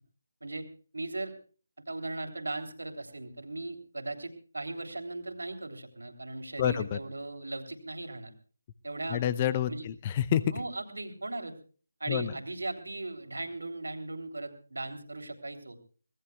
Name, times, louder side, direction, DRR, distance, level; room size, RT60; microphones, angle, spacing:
voice 1, 0.9-1.3 1.9-8.3 8.8-9.2 9.7-9.8 10.5-11.6 12.0-15.8, right 2 dB, 70° right, 5 dB, 3.2 m, -38 dB
voice 2, 6.6-7.0 9.1-10.4 12.1-12.3, left 10 dB, 25° left, 16 dB, 0.7 m, -28 dB
25.0 x 19.5 x 2.4 m, 0.41 s
figure-of-eight pair, 155°, 0 cm